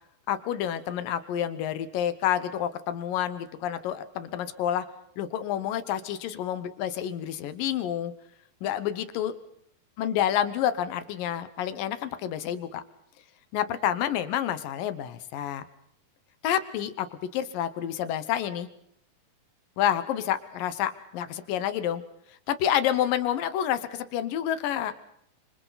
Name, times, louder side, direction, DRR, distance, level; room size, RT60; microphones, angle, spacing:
voice 1, 0.3-4.9 5.2-8.1 8.6-9.3 10.0-12.8 13.5-15.6 16.4-17.1 17.3-18.7 19.8-22.0 22.5-24.9, left 10 dB, 75° left, 12 dB, 2.6 m, -28 dB
30.0 x 26.0 x 4.0 m, 0.72 s
omnidirectional pair, 4.2 m